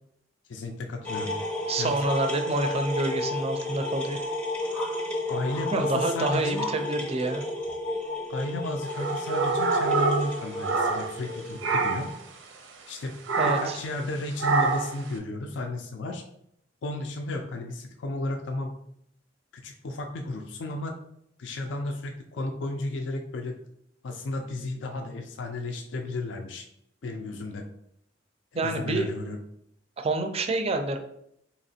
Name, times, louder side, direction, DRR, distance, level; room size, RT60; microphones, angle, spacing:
voice 1, 0.5-1.3 1.8-1.9 5.3-6.6 8.3-12.1 12.9-13.2 13.4-16.2 16.8-18.7 19.5-21.0 21.4-23.6 24.0-26.7 27.0-27.7 28.5-29.4, left 2 dB, 70° left, 4 dB, 0.4 m, -33 dB
sound 1, 1.0-12.1, left 2 dB, 10° left, 0.6 m, -33 dB
voice 2, 1.7-4.2 5.7-7.4 13.4-13.8 28.6-29.1 30.0-31.0, right 2 dB, 35° right, 6 dB, 0.4 m, -27 dB
sound 2, 8.9-11.3 11.6-12.2 13.3-13.8 14.4-15.0, right 3 dB, 90° right, 0.6 m, -26 dB
4.1 x 2.9 x 2.7 m, 0.74 s
head